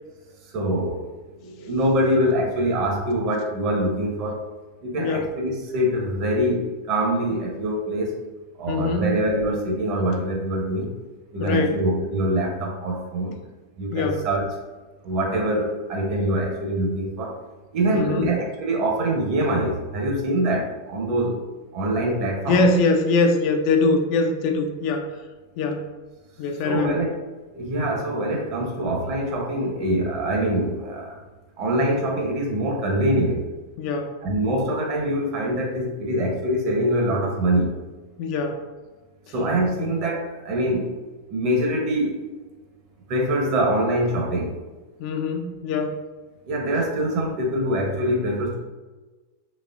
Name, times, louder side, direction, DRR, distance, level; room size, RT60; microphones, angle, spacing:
voice 1, 0.5-1.1 1.4-4.4 4.8-8.2 8.6-10.9 11.3-13.3 13.8-14.5 15.0-17.4 17.7-21.4 21.7-22.6 26.6-27.1 27.5-31.2 31.6-33.4 34.2-37.7 39.3-40.9 41.3-42.2 43.1-44.5 46.4-48.6, right 1 dB, 40° right, 0 dB, 0.9 m, -24 dB
voice 2, 5.0-5.3 8.7-9.1 11.4-11.8 13.9-14.3 17.9-18.3 22.5-25.1 25.6-25.9 26.4-27.0 33.8-34.2 38.2-38.6 39.8-39.9 45.0-46.0, left 3 dB, 45° left, 4 dB, 0.4 m, -23 dB
4.1 x 3.2 x 2.5 m, 1.2 s
figure-of-eight pair, 90°, 0 cm